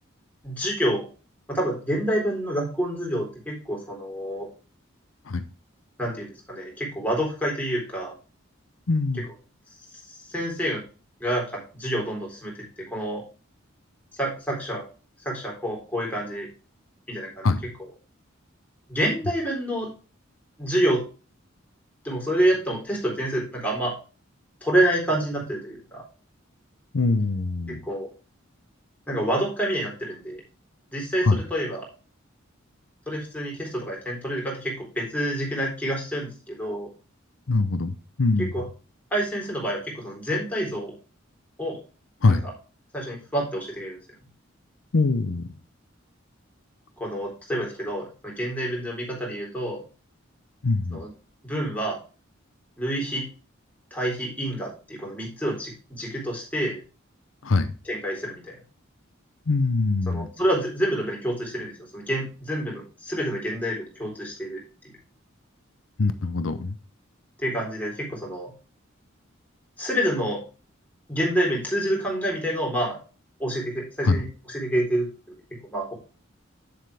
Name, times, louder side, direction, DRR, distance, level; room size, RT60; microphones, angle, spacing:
voice 1, 0.4-1.1 1.5-4.5 6.0-8.1 9.9-10.0 10.3-10.8 11.2-13.2 14.1-14.8 15.2-16.5 17.1-17.5 18.9-19.9 20.6-21.0 22.0-23.9 24.6-26.0 27.7-28.1 29.1-30.4 30.9-31.9 33.1-36.9 38.4-38.6 39.1-40.9 41.6-41.8 42.3-42.4 42.9-44.0 47.0-49.8 50.9-51.1 51.4-52.0 52.8-53.3 53.9-56.8 57.8-58.6 60.1-64.6 67.4-68.5 69.8-70.4 71.1-73.0 73.4-75.1 75.7-75.9, right 1 dB, 10° left, 3.9 m, -28 dB
voice 2, 8.9-9.2 17.4-17.6 26.9-27.8 31.2-31.4 37.5-38.5 42.2-42.4 44.9-45.5 50.6-51.0 57.4-57.7 59.5-60.3 66.0-66.7 74.0-74.2, left 3 dB, 80° left, 0.7 m, -23 dB
8.9 x 7.5 x 3.4 m
head